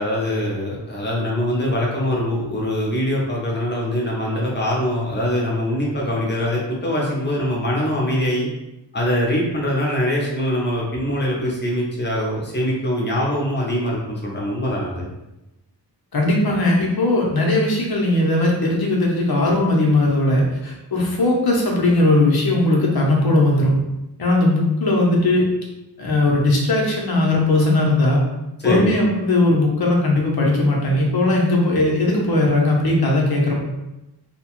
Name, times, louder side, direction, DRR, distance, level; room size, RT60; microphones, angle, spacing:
voice 1, 0.0-8.5 8.9-15.1 28.6-28.9, left 1 dB, 25° left, -4 dB, 0.8 m, -23 dB
voice 2, 16.1-23.7 24.2-25.4 26.0-28.2 28.6-33.6, left 2 dB, 60° left, -1 dB, 0.8 m, -18 dB
2.9 x 2.1 x 2.9 m, 0.95 s
wide cardioid pair, 110°, 42 cm